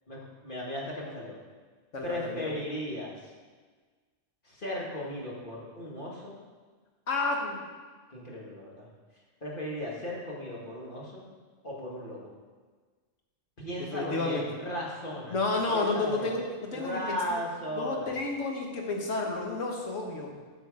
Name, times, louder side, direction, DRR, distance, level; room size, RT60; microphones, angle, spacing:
voice 1, 0.1-1.4 2.0-3.3 4.4-6.3 8.1-8.9 9.4-11.3 11.6-12.2 13.6-16.3 16.7-18.2, left 1 dB, 40° left, -4 dB, 1.9 m, -36 dB
voice 2, 1.9-2.5 7.1-7.6 13.9-14.4 15.3-17.4 17.7-20.3, left 3 dB, 75° left, 1 dB, 1.6 m, -31 dB
8.5 x 6.3 x 4.9 m, 1.5 s
omnidirectional pair, 1.3 m